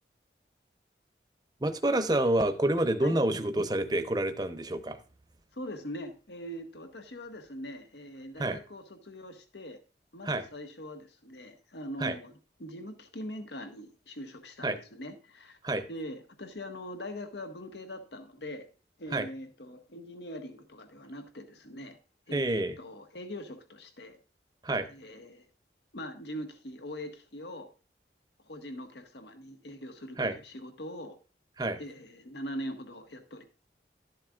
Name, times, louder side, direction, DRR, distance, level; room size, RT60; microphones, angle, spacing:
voice 1, 1.6-5.0 8.4-8.6 10.2-10.4 12.0-12.2 14.6-14.8 15.6-15.8 19.1-19.3 22.3-22.8 24.6-24.9 30.2-30.4 31.6-31.8, right 1 dB, 25° right, 10 dB, 0.8 m, -28 dB
voice 2, 5.5-9.8 10.1-12.3 12.6-15.6 15.9-18.7 19.0-22.0 22.3-24.2 24.9-25.5 25.9-27.7 28.4-31.2 31.8-33.4, equal, 80° left, 7 dB, 1.4 m, -42 dB
12.5 x 7.6 x 2.4 m, 0.34 s
head